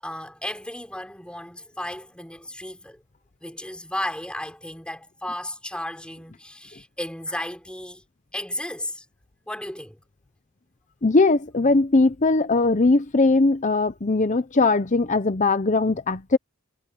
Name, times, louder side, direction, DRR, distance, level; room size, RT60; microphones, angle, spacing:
voice 1, 0.0-3.0 3.4-8.0 8.3-9.1 9.5-10.0, left 1 dB, 5° left, 5.5 m, -34 dB
voice 2, 11.0-16.4, left 3 dB, 35° left, 0.7 m, -20 dB
head